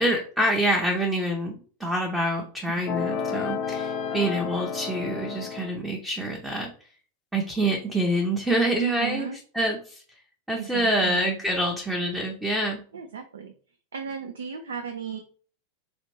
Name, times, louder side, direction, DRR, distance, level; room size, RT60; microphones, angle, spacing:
voice 1, 0.0-6.7 7.3-9.3 9.5-10.0 10.5-12.8, right 1 dB, 5° right, -1 dB, 0.6 m, -26 dB
sound 1, 2.9-5.7, left 6 dB, 35° left, 0.5 m, -31 dB
voice 2, 8.8-9.4 10.6-11.3 12.9-13.5 13.9-15.2, right 7 dB, 70° right, 6 dB, 0.4 m, -34 dB
4.2 x 2.4 x 3.1 m, 0.43 s
figure-of-eight pair, 90°, 0 cm